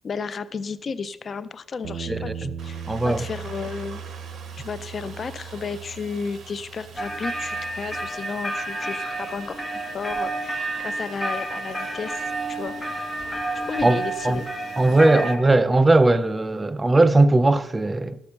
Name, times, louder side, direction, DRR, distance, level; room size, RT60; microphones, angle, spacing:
voice 1, 0.0-4.0 4.6-12.7 13.7-14.5 15.1-15.2, left 5 dB, 45° left, 0.5 m, -33 dB
Bass guitar, 1.8-8.1, right 7 dB, 80° right, 0.7 m, -38 dB
voice 2, 2.1-2.5 2.9-3.2 13.8-14.0 14.2-14.4 14.8-18.2, right 2 dB, 20° right, 0.5 m, -19 dB
Aircraft, 2.6-15.1, right 5 dB, 55° right, 1.7 m, -46 dB
sound 1, 7.0-15.4, right 2 dB, 10° left, 1.7 m, -30 dB
13.0 x 6.7 x 5.7 m
cardioid pair, 85°, 0 cm